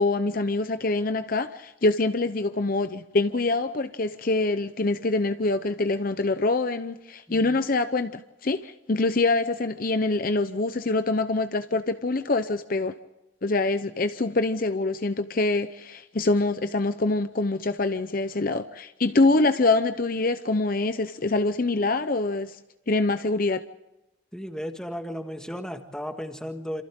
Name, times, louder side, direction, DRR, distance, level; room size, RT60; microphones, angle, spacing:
voice 1, 0.0-12.9 13.4-22.6 22.9-23.6, left 2 dB, 45° left, 0.7 m, -25 dB
voice 2, 7.3-7.6 24.3-26.8, equal, 5° left, 1.7 m, -35 dB
28.0 x 27.0 x 3.7 m
head